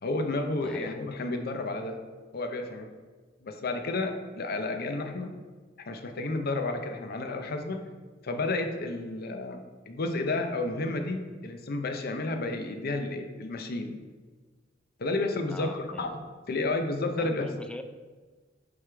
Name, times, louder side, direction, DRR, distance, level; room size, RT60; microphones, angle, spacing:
voice 1, 0.0-2.0 2.3-2.9 3.4-5.3 5.8-7.8 8.2-14.0 15.0-16.1 16.5-17.5, left 2 dB, 55° left, 6 dB, 0.6 m, -31 dB
voice 2, 0.5-0.9 15.5-16.1 17.2-17.8, left 1 dB, 5° left, 7 dB, 0.3 m, -42 dB
6.6 x 3.6 x 4.5 m, 1.4 s
head